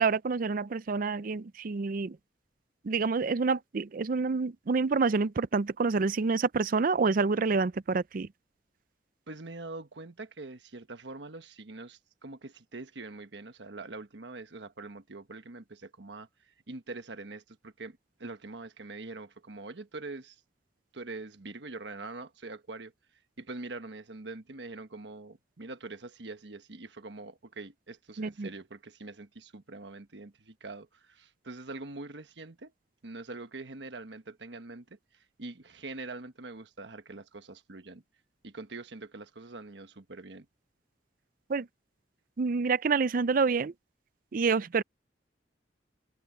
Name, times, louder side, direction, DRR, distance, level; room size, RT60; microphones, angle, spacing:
voice 1, 0.0-2.2 2.8-8.3 28.2-28.5 41.5-41.7 42.4-43.7 44.3-44.8, right 4 dB, 50° right, 0.5 m, -27 dB
voice 2, 9.3-20.4 20.9-22.9 23.4-32.7 33.0-38.0 38.4-40.5, right 3 dB, 75° right, 1.3 m, -44 dB
open air
head